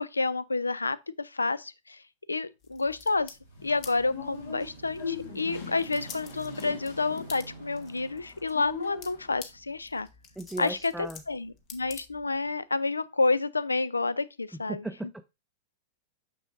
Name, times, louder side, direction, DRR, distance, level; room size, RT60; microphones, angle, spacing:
voice 1, 0.0-2.0 2.3-3.3 3.6-10.1 10.6-14.8, left 3 dB, 85° left, 0.3 m, -29 dB
sound 1, 2.6-12.5, left 7 dB, 40° left, 1.0 m, -50 dB
sound 2, 2.8-11.6 12.2-12.3, right 5 dB, 75° right, 0.5 m, -50 dB
sound 3, 3.6-9.3, left 6 dB, 65° left, 1.6 m, -41 dB
voice 2, 10.4-11.2 14.5-15.2, right 1 dB, 5° right, 0.4 m, -37 dB
6.1 x 6.1 x 2.6 m
figure-of-eight pair, 95°, 0 cm